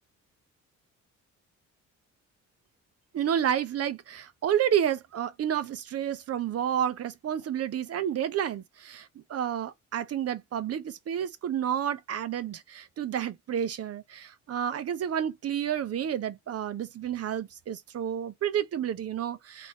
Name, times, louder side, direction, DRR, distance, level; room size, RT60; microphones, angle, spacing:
voice 1, 3.1-19.7, right 9 dB, 55° right, 0.7 m, -30 dB
3.8 x 2.7 x 2.8 m
cardioid pair, 90°, 30 cm